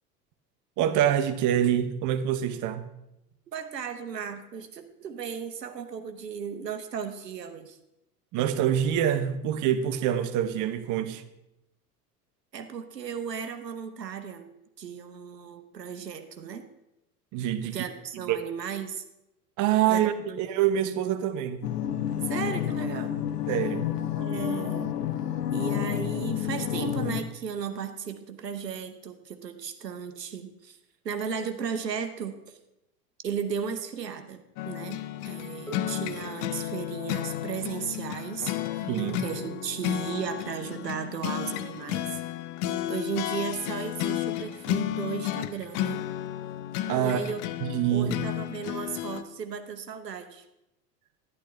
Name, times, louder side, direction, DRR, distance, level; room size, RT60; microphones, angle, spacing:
voice 1, 0.8-2.8 8.3-11.2 17.3-17.8 18.1-18.4 19.6-21.7 23.5-23.9 38.9-39.2 46.9-47.2 47.6-48.1, right 10 dB, 40° right, 0.9 m, -26 dB
voice 2, 3.5-7.8 12.5-14.5 14.8-16.6 17.6-19.0 19.9-20.4 22.2-23.1 24.2-24.9 25.5-30.8 31.0-32.6 33.2-35.0 35.3-38.9 39.2-42.2 42.9-46.0 47.0-47.4 47.9-50.4, right 7 dB, 85° right, 1.0 m, -35 dB
sound 1, 21.6-27.2, left 11 dB, 75° left, 1.0 m, -30 dB
sound 2, 34.6-49.2, left 13 dB, 40° left, 0.6 m, -33 dB
Harp, 35.7-41.5 42.5-42.6, right 1 dB, 5° left, 3.3 m, -49 dB
11.0 x 10.5 x 3.4 m
figure-of-eight pair, 80°, 48 cm